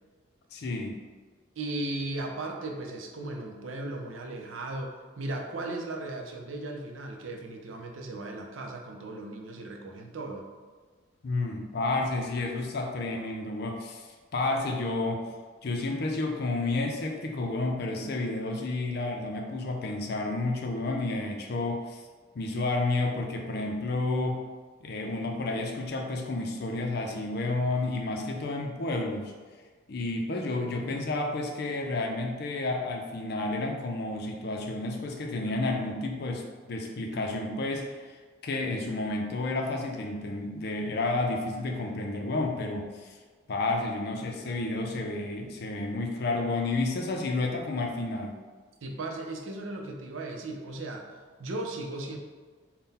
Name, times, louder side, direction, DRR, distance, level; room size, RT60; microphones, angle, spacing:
voice 1, 0.5-1.0 11.2-15.3 15.6-22.0 22.4-24.4 24.8-29.3 29.9-38.2 38.4-43.1 43.5-48.4, left 2 dB, 55° left, 2 dB, 0.5 m, -31 dB
voice 2, 1.6-10.4 48.8-52.2, right 2 dB, 80° right, 2 dB, 0.5 m, -36 dB
3.8 x 2.2 x 4.0 m, 1.4 s
head